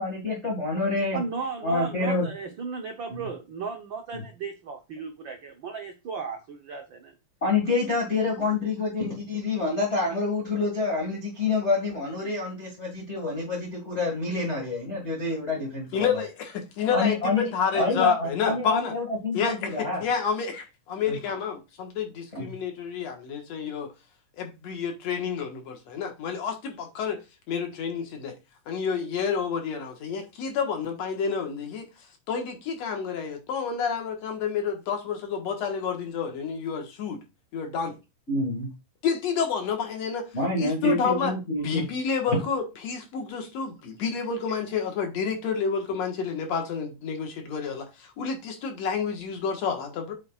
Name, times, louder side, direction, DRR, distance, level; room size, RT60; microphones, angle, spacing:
voice 1, 0.0-1.2 1.6-2.3 3.1-3.3 4.1-4.2 7.4-16.2 16.9-17.4 17.7-20.0 21.1-21.2 22.3-22.5 38.3-38.7 40.3-41.9, left 3 dB, 25° left, 1.8 m, -27 dB
voice 2, 1.1-7.1, right 5 dB, 85° right, 1.0 m, -35 dB
voice 3, 15.9-18.9 19.3-23.9 24.4-27.2 27.5-28.4 28.7-31.9 32.3-37.2 37.5-38.0 39.0-40.3 40.5-41.3 41.6-50.1, left 6 dB, 60° left, 2.5 m, -29 dB
8.2 x 7.6 x 2.4 m
omnidirectional pair, 3.6 m